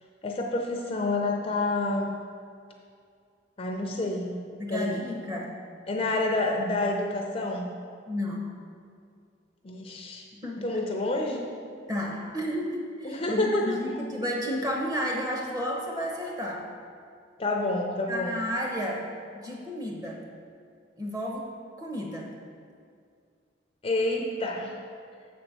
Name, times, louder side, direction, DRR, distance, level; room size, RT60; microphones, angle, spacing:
voice 1, 0.2-2.1 3.6-4.4 4.7-5.1 5.9-7.7 9.6-10.3 10.6-11.5 13.0-13.8 17.4-18.4 23.8-24.8, left 2 dB, 30° left, 1 dB, 0.5 m, -28 dB
voice 2, 4.6-5.5 8.1-8.5 10.4-10.7 11.9-16.6 18.1-19.0 19.3-20.2 21.0-21.5 21.8-22.3, equal, 20° right, -1 dB, 1.0 m, -32 dB
6.6 x 4.3 x 6.5 m, 2.3 s
head